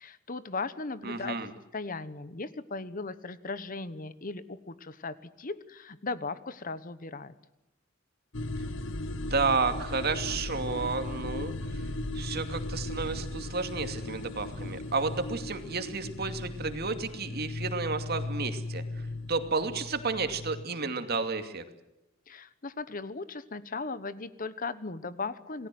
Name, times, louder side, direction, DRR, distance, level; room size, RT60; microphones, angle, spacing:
voice 1, 0.0-1.4 1.7-7.3 22.3-25.7, left 3 dB, 45° left, 14 dB, 1.2 m, -37 dB
voice 2, 1.0-1.5 9.3-11.9 12.1-21.6, right 4 dB, 50° right, 8 dB, 2.5 m, -32 dB
sound 1, 8.3-20.6, left 2 dB, 65° left, 1.1 m, -37 dB
28.0 x 19.0 x 7.8 m, 0.92 s
head